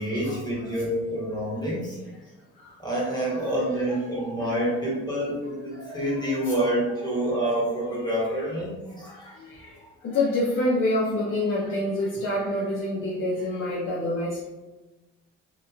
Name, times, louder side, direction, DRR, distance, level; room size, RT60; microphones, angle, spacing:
voice 1, 0.0-2.0 2.8-9.3 9.6-9.7, right 1 dB, 15° left, -6 dB, 1.0 m, -27 dB
voice 2, 10.0-14.4, left 1 dB, 40° left, -6 dB, 0.6 m, -26 dB
2.9 x 2.4 x 2.3 m, 1.1 s
cardioid pair, 90°, 30 cm